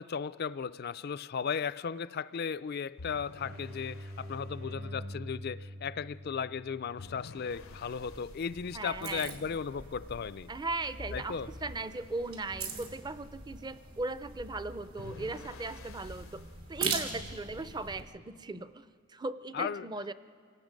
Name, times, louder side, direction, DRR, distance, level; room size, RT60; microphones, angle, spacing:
voice 1, 0.0-10.5 11.1-11.5 19.5-19.9, left 6 dB, 50° left, 16 dB, 0.4 m, -36 dB
sound 1, 3.0-4.4 7.0-8.5 11.0-12.3 15.0-16.5, left 3 dB, 80° left, 0.7 m, -50 dB
sound 2, 3.4-8.9, equal, 65° right, 4.0 m, -45 dB
sound 3, 7.5-18.0, right 4 dB, 85° right, 3.1 m, -42 dB
voice 2, 8.7-9.3 10.5-11.4 11.6-20.1, right 2 dB, 20° right, 13 dB, 0.5 m, -38 dB
28.0 x 18.0 x 5.2 m, 2.4 s
head